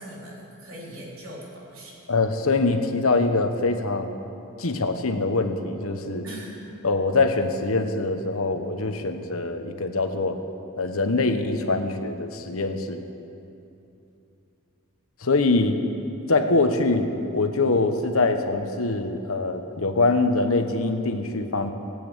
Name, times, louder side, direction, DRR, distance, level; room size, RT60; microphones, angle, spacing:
voice 1, 0.0-1.9 6.2-6.6, equal, 70° right, -4 dB, 3.7 m, -40 dB
voice 2, 2.1-4.1 4.6-6.2 6.8-10.4 10.8-13.0 15.2-15.7 16.3-17.1 17.3-21.7, left 3 dB, 70° left, 7 dB, 1.1 m, -23 dB
18.0 x 8.6 x 8.4 m, 2.8 s
head